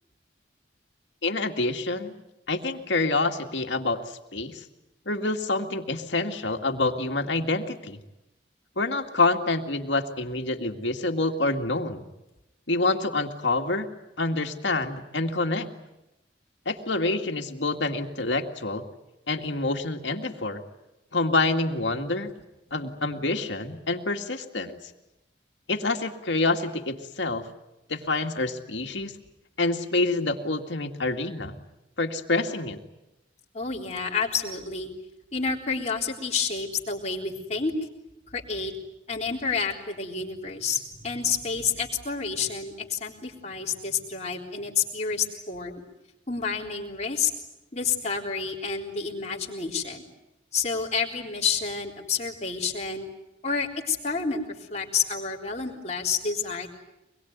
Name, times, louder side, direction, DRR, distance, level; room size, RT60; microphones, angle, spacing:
voice 1, 1.2-2.1 2.5-4.6 5.1-8.0 8.8-12.0 12.7-13.9 14.2-15.7 16.7-18.8 19.3-20.6 21.1-22.3 22.7-24.8 25.7-27.4 27.9-29.1 29.6-31.5 32.0-32.8, left 2 dB, 75° left, 4 dB, 2.2 m, -27 dB
voice 2, 33.5-34.9 35.3-37.7 38.3-38.7 39.1-45.8 46.3-47.3 47.7-50.1 50.5-53.1 53.4-56.8, left 5 dB, 35° left, -1 dB, 3.7 m, -29 dB
24.5 x 22.0 x 9.4 m, 0.95 s
head